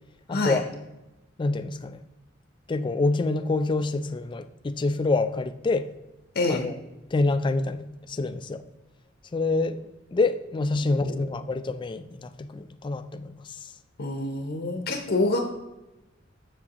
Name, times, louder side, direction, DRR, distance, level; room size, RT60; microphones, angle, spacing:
voice 1, 0.3-0.6 1.4-2.0 2.7-5.9 6.5-6.8 7.1-8.6 9.3-13.7, left 3 dB, 25° left, 11 dB, 0.3 m, -27 dB
voice 2, 6.3-6.7 10.9-11.2 14.0-15.4, left 2 dB, 50° left, 4 dB, 0.7 m, -27 dB
7.2 x 7.0 x 2.9 m, 1.0 s
head